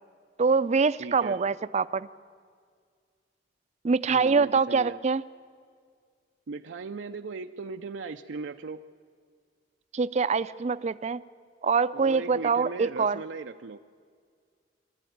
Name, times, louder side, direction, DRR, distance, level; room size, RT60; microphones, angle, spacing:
voice 1, 0.4-2.1 3.8-5.2 9.9-11.2 11.6-13.2, right 5 dB, 40° right, 15 dB, 0.4 m, -24 dB
voice 2, 1.0-1.4 4.1-5.0 6.5-8.8 11.9-13.8, right 4 dB, 85° right, 6 dB, 0.5 m, -38 dB
23.0 x 13.5 x 9.3 m, 2.1 s
head